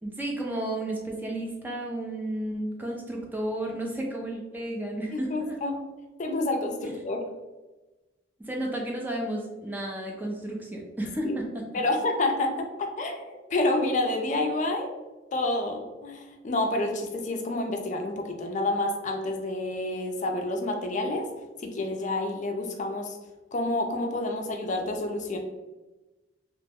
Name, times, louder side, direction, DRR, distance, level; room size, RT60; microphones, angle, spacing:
voice 1, 0.0-5.6 8.4-11.7, right 1 dB, 10° right, -1 dB, 0.5 m, -32 dB
voice 2, 5.1-5.8 6.2-7.2 11.2-11.3 11.7-14.9 15.3-21.3 21.6-23.2 23.5-25.4, left 2 dB, 40° left, 3 dB, 0.4 m, -29 dB
2.9 x 2.1 x 3.4 m, 1.1 s
head